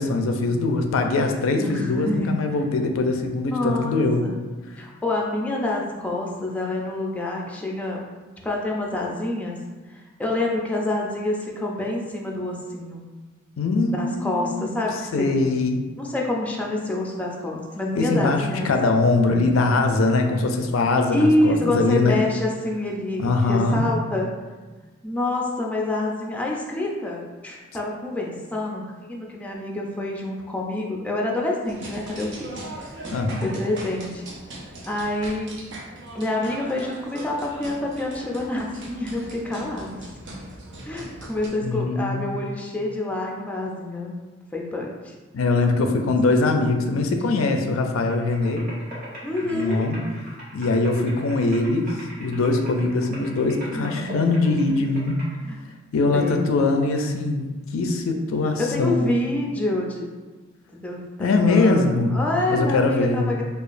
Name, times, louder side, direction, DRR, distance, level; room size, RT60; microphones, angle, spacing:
voice 1, 0.0-4.2 13.6-14.9 15.1-15.8 18.0-22.2 23.2-23.9 33.1-33.5 41.6-42.4 45.3-48.7 49.4-50.0 50.5-55.2 55.9-57.4 57.7-59.1 61.2-63.3, left 3 dB, 90° left, 5 dB, 0.4 m, -22 dB
voice 2, 1.5-2.4 3.4-4.4 4.8-8.0 8.4-9.6 9.9-13.0 13.9-15.3 16.0-18.7 21.1-24.3 25.0-32.5 33.0-33.1 33.4-34.2 34.9-35.5 36.1-40.1 40.8-44.1 44.5-45.1 46.8-47.1 49.2-49.9 53.7-54.4 55.4-55.6 56.1-56.5 58.6-60.0 60.7-61.0 61.4-63.4, left 1 dB, 5° left, -2 dB, 0.4 m, -27 dB
sound 1, 31.6-41.5, right 1 dB, 65° right, 0.7 m, -39 dB
sound 2, 48.1-55.3, equal, 45° right, 1.0 m, -41 dB
4.8 x 2.3 x 2.5 m, 1.3 s
head